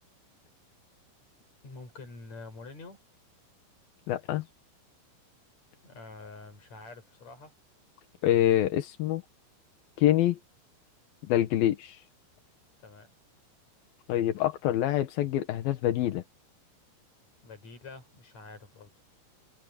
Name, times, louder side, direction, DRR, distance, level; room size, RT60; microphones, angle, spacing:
voice 1, 1.6-3.0 5.8-7.5 12.8-13.1 17.4-18.9, left 3 dB, 35° left, 6.9 m, -46 dB
voice 2, 4.1-4.4 8.2-9.2 10.0-10.4 11.2-12.0 14.1-16.2, left 12 dB, 70° left, 2.5 m, -26 dB
omnidirectional pair, 5.5 m